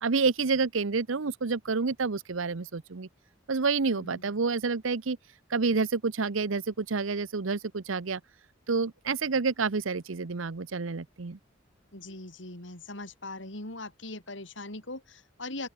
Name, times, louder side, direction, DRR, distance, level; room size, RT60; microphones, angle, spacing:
voice 1, 0.0-3.1 3.5-5.2 5.5-8.2 8.7-11.4, right 4 dB, 80° right, 0.8 m, -28 dB
voice 2, 3.9-4.2 11.9-15.7, left 2 dB, 65° left, 4.6 m, -40 dB
open air
head